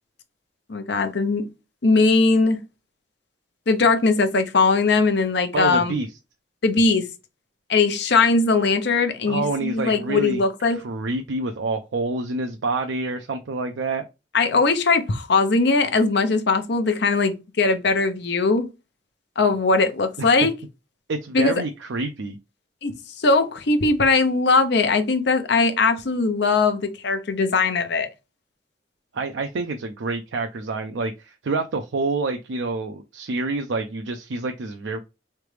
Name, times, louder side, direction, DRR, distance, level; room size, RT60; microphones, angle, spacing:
voice 1, 0.7-1.5 1.8-2.6 3.7-5.9 6.6-7.1 7.7-10.8 14.3-18.6 19.4-20.5 21.3-21.5 22.8-28.1, left 3 dB, 60° left, 0.7 m, -20 dB
voice 2, 5.5-6.1 9.3-14.0 20.2-20.3 21.1-22.4 29.1-35.0, right 3 dB, 75° right, 0.5 m, -27 dB
3.8 x 3.3 x 3.2 m
head